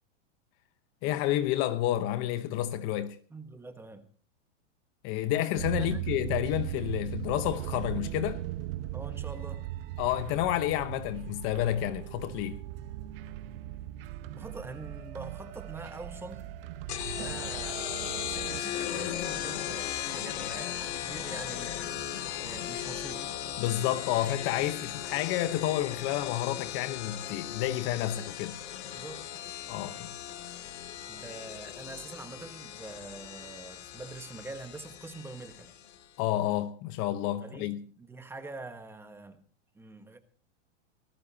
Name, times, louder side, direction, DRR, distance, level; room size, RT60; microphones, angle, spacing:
voice 1, 1.0-3.2 5.0-8.4 10.0-12.6 23.6-28.6 29.7-30.1 36.2-37.8, left 13 dB, 35° left, 1.0 m, -30 dB
voice 2, 3.3-4.1 5.8-6.1 8.9-9.7 14.3-16.5 17.1-17.8 18.2-21.8 22.4-23.3 28.8-29.2 31.1-35.7 37.4-39.4 39.7-40.2, right 3 dB, 5° right, 1.4 m, -44 dB
sound 1, 5.5-18.6, right 13 dB, 50° right, 1.0 m, -38 dB
sound 2, 16.9-36.0, left 11 dB, 60° left, 2.6 m, -37 dB
19.0 x 16.5 x 2.8 m
hypercardioid pair, 145°, 36 cm